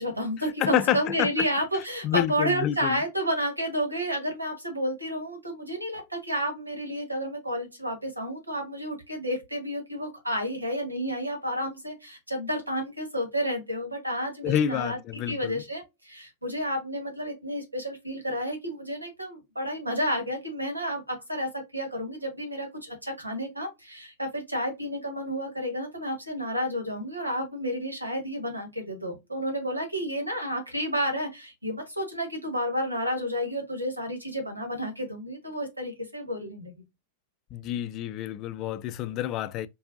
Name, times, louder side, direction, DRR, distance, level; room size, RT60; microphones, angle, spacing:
voice 1, 0.0-15.0 15.3-36.8, equal, 85° right, 1.5 m, -31 dB
voice 2, 0.6-1.3 2.0-3.0 14.4-15.6 37.5-39.7, left 11 dB, 35° left, 0.4 m, -28 dB
4.6 x 2.5 x 2.6 m
figure-of-eight pair, 90°, 0 cm